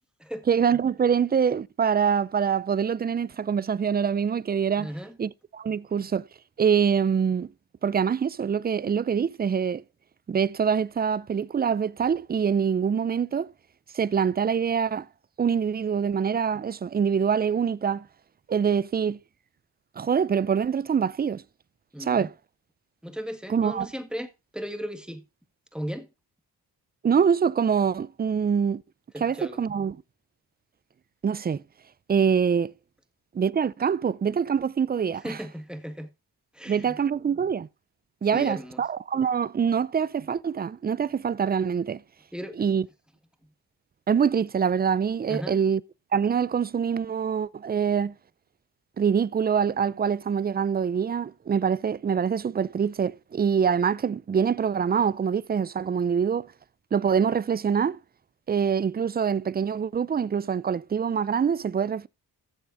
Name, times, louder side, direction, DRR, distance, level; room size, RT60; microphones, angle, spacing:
voice 1, 0.5-4.9 5.2-6.3 6.6-7.5 7.8-9.8 10.3-13.5 13.9-15.1 15.4-18.1 18.5-19.2 20.0-21.4 22.0-22.3 23.5-23.9 27.0-28.8 29.2-30.0 31.2-31.6 32.1-32.7 33.3-35.4 36.7-37.7 38.2-42.0 42.6-42.8 44.1-45.8 46.1-48.1 49.0-56.5 56.9-58.0 58.5-62.1, right 7 dB, 25° right, 0.4 m, -25 dB
voice 2, 4.8-5.2 21.9-22.3 23.0-25.3 25.7-26.1 29.1-29.6 35.2-36.1 36.5-37.0 38.3-38.8 42.3-42.7 45.3-45.6, equal, ahead, 1.7 m, -36 dB
15.5 x 7.0 x 2.5 m
cardioid pair, 65°, 42 cm